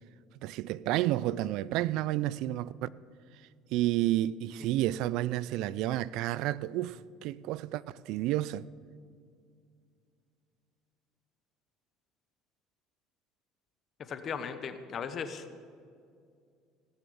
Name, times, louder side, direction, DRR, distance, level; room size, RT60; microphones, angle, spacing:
voice 1, 0.4-2.9 3.7-8.7, right 14 dB, 70° right, 0.3 m, -30 dB
voice 2, 14.0-15.4, left 6 dB, 40° left, 0.9 m, -37 dB
17.0 x 7.1 x 7.1 m
cardioid pair, 135°, 0 cm